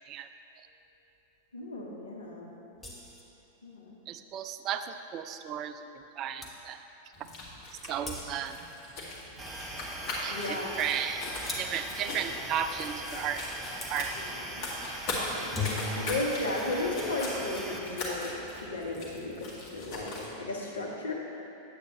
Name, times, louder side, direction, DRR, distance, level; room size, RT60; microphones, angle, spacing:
voice 1, 1.5-2.5 3.6-3.9 10.3-10.8 14.2-14.3 15.2-21.1, left 2 dB, 70° left, -1 dB, 1.1 m, -35 dB
sound 1, 2.8-3.3 6.0-6.1 6.4-6.6 8.0-8.6 11.5-11.9 13.8-14.0 15.3-16.1, left 3 dB, 10° left, 1.1 m, -37 dB
voice 2, 4.1-5.7 6.2-6.8 7.9-8.6 10.2-10.4 10.8-11.3 11.6-13.4 13.9-14.1, right 9 dB, 35° right, 9 dB, 0.3 m, -34 dB
sound 2, 7.1-20.3, left 2 dB, 40° left, 1.8 m, -40 dB
sound 3, 9.4-17.8, right 1 dB, 15° right, 0.8 m, -40 dB
9.0 x 8.4 x 3.1 m, 3.0 s
figure-of-eight pair, 90°, 0 cm